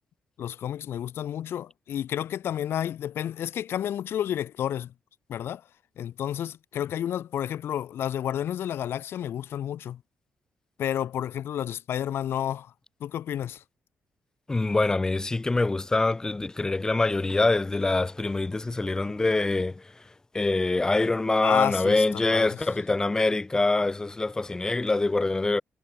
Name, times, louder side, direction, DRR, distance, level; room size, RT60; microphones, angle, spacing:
voice 1, 0.4-4.9 5.3-5.6 6.0-10.0 10.8-12.7 13.0-13.6 21.4-22.0 22.3-22.5, left 10 dB, 65° left, 0.7 m, -30 dB
voice 2, 14.5-20.0 20.3-25.6, left 2 dB, 15° left, 1.2 m, -25 dB
wide cardioid pair, 155°, 4 cm